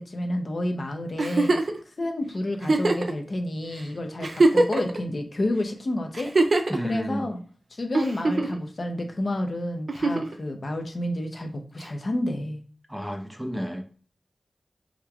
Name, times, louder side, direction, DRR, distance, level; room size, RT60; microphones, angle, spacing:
voice 1, 0.0-1.5 2.0-7.4 7.7-12.6, left 1 dB, 55° left, 4 dB, 0.6 m, -30 dB
Giggle, 1.2-1.8 2.6-3.1 3.8-3.9 4.2-5.0 6.1-6.8 7.9-8.6 9.9-10.3 11.8-11.9, right 2 dB, 65° right, 0.4 m, -22 dB
voice 2, 6.7-7.3 12.9-14.0, equal, 5° right, 4 dB, 0.5 m, -30 dB
3.5 x 3.1 x 2.3 m, 0.42 s
cardioid pair, 55°, 0 cm